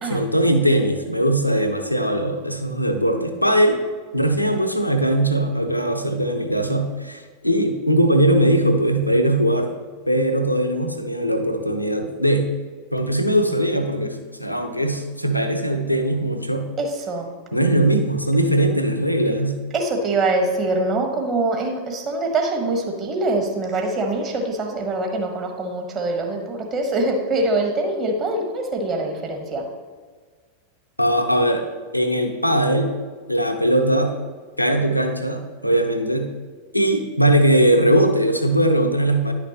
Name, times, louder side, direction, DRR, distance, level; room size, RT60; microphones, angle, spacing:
voice 1, 0.0-3.8 4.1-9.7 10.1-12.5 12.9-16.7 17.5-19.5 31.0-31.7 31.9-32.9 33.3-34.1 34.6-36.3 36.7-39.3, right 1 dB, 90° left, 5 dB, 0.6 m, -20 dB
voice 2, 16.8-17.3 19.7-29.6, right 2 dB, 30° right, 3 dB, 1.3 m, -24 dB
10.0 x 5.9 x 3.0 m, 1.5 s
figure-of-eight pair, 90°, 0 cm